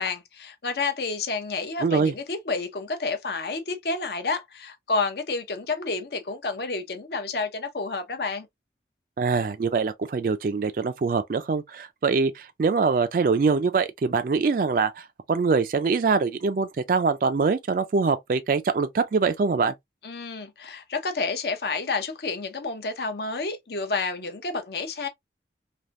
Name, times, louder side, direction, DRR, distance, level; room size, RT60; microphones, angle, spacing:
voice 1, 0.0-8.5 20.0-25.1, left 4 dB, 65° left, 0.7 m, -30 dB
voice 2, 1.8-2.1 9.2-19.7, right 4 dB, 50° right, 0.3 m, -24 dB
3.4 x 2.6 x 2.4 m
head